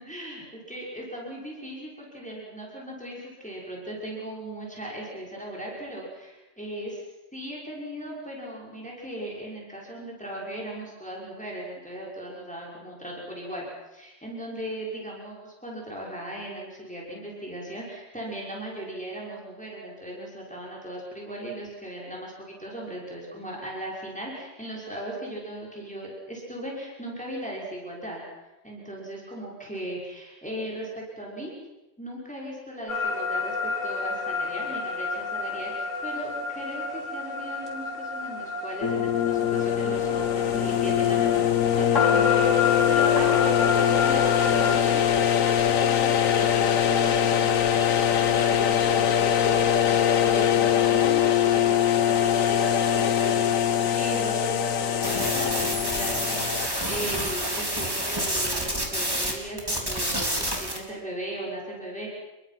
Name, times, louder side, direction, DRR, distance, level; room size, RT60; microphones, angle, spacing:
voice 1, 0.0-7.0 7.3-13.7 13.9-28.2 28.6-31.5 32.0-62.1, right 1 dB, 5° left, -4 dB, 6.0 m, -37 dB
sound 1, 32.9-44.8, left 4 dB, 65° left, 4.8 m, -29 dB
sound 2, 38.8-56.7, left 9 dB, 85° left, 1.4 m, -22 dB
sound 3, 55.0-59.3 59.6-60.8, right 1 dB, 15° right, 4.1 m, -28 dB
29.0 x 22.5 x 6.1 m, 1.0 s
omnidirectional pair, 1.4 m